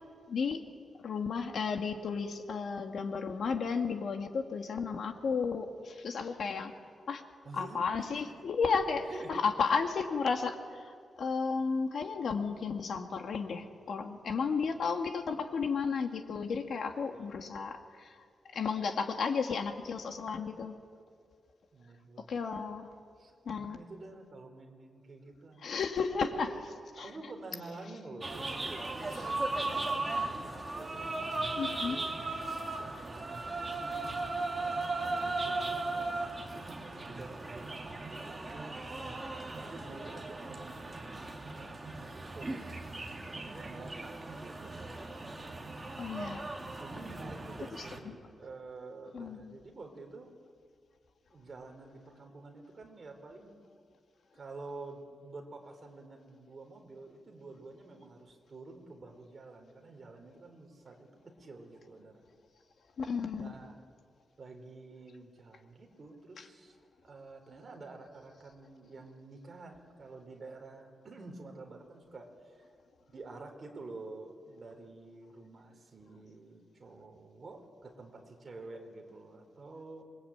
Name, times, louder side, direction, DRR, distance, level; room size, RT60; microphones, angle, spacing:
voice 1, 0.3-0.6 1.0-6.7 7.1-7.2 7.5-18.2 18.5-20.8 22.3-22.9 23.5-23.8 25.6-26.5 27.0-27.1 31.5-32.0 46.0-46.4 48.1-48.2 49.1-49.6 63.0-63.5, left 5 dB, 60° left, 5 dB, 2.0 m, -33 dB
voice 2, 7.4-8.4 9.1-9.5 14.6-14.9 17.0-17.3 21.7-22.4 23.2-25.6 26.2-26.5 27.0-32.2 32.6-38.9 39.6-44.9 46.8-50.3 51.3-53.7 54.3-62.2 63.4-63.7 64.4-66.8 67.0-72.7 73.1-80.0, right 3 dB, 35° right, 3 dB, 4.2 m, -49 dB
sound 1, 28.2-48.0, right 2 dB, 15° right, 2.5 m, -37 dB
27.5 x 23.0 x 8.8 m, 2.1 s
wide cardioid pair, 150°, 0 cm